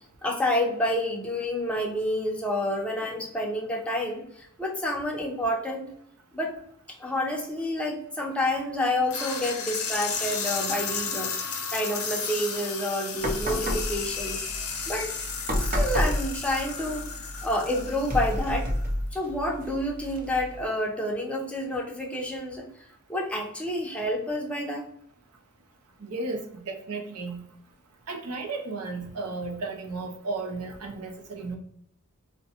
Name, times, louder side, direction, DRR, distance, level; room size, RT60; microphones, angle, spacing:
voice 1, 0.2-5.9 6.3-6.5 7.0-11.3 11.7-14.4 14.9-15.1 15.6-17.1 17.4-18.7 19.1-22.7 23.1-24.8, left 1 dB, 5° left, -1 dB, 0.6 m, -29 dB
sound 1, 9.1-18.9, left 5 dB, 70° left, 0.7 m, -33 dB
sound 2, 13.2-20.6, equal, 40° right, 0.6 m, -31 dB
voice 2, 26.0-27.4 28.1-31.6, right 3 dB, 85° right, 4 dB, 0.7 m, -34 dB
3.8 x 2.2 x 2.8 m, 0.73 s
head